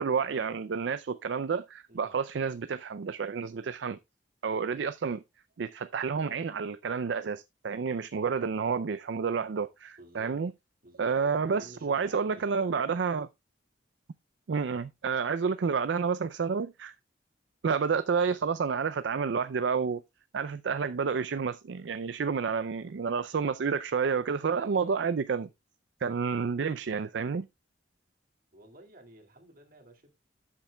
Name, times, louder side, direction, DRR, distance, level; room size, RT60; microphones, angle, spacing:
voice 1, 0.0-4.0 4.4-5.2 5.6-10.5 11.0-13.3 14.5-16.9 17.6-20.0 20.3-25.5 26.0-27.5, right 5 dB, 65° right, 0.4 m, -30 dB
voice 2, 10.0-10.4 10.8-12.7 24.5-24.9 28.5-30.2, right 1 dB, 50° right, 2.1 m, -52 dB
13.0 x 7.3 x 2.3 m
head